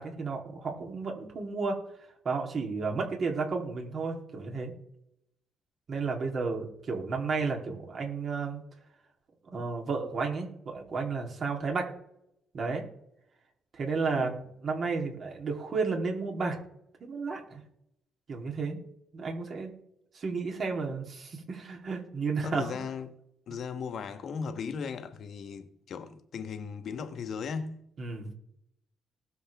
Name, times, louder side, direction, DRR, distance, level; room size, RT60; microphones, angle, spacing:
voice 1, 0.0-1.8 2.2-4.7 5.9-8.6 9.5-11.9 12.5-12.9 13.7-14.3 14.6-16.6 17.0-17.6 18.3-18.8 19.1-19.7 20.1-22.8 28.0-28.3, right 4 dB, 50° right, 3.4 m, -32 dB
voice 2, 22.4-23.2 23.5-27.8, left 6 dB, 60° left, 1.4 m, -37 dB
19.5 x 7.0 x 3.6 m
cardioid pair, 90°, 0 cm